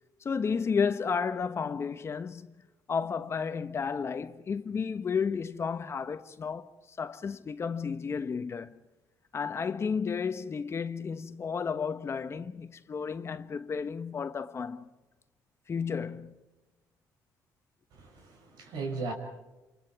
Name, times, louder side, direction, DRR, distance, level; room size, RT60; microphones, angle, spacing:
voice 1, 0.2-2.6 2.9-8.8 9.3-14.9 15.7-16.4, left 6 dB, 40° left, 1.2 m, -32 dB
voice 2, 17.9-19.1, right 4 dB, 80° right, 6.0 m, -37 dB
28.0 x 27.5 x 4.8 m
cardioid pair, 95°, 7 cm